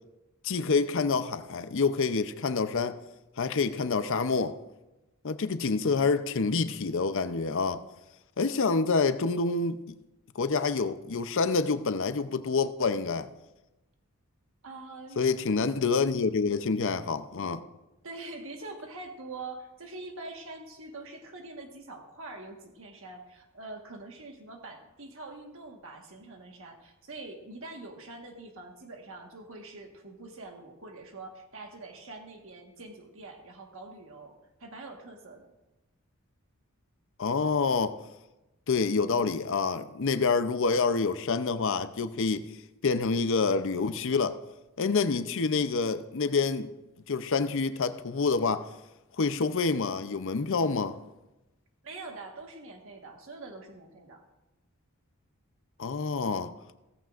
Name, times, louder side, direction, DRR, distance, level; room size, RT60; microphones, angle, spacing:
voice 1, 0.4-3.0 3.4-4.6 5.2-7.8 8.4-9.8 10.4-13.3 15.2-17.6 37.2-38.0 38.7-42.5 42.8-44.4 44.8-46.7 47.1-48.7 49.2-51.0 55.8-56.5, left 4 dB, 60° left, 0.6 m, -27 dB
voice 2, 14.6-15.2 18.0-35.5 51.8-54.2, right 2 dB, 65° right, 1.5 m, -44 dB
16.0 x 15.0 x 2.5 m
head